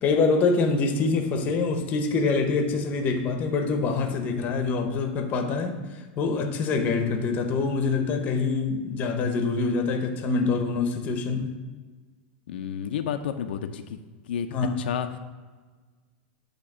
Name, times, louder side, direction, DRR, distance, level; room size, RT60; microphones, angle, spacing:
voice 1, 0.0-5.8 6.2-11.5 14.5-14.7, left 4 dB, 30° left, 0.7 m, -25 dB
voice 2, 12.5-14.0 14.3-14.5 14.8-15.2, left 8 dB, 90° left, 0.5 m, -31 dB
8.6 x 2.9 x 5.9 m
supercardioid pair, 155°, 5 cm